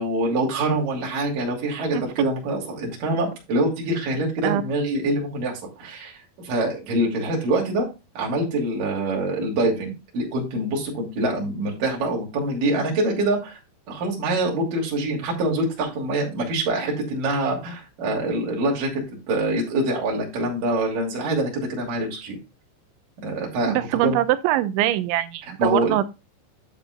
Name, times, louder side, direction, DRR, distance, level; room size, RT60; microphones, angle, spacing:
voice 1, 0.0-7.9 8.2-13.6 13.9-22.4 23.2-23.8 24.0-24.2 25.6-26.0, right 1 dB, 50° right, 3.9 m, -25 dB
voice 2, 23.7-26.1, right 13 dB, 90° right, 3.2 m, -23 dB
10.5 x 8.8 x 2.2 m
omnidirectional pair, 5.2 m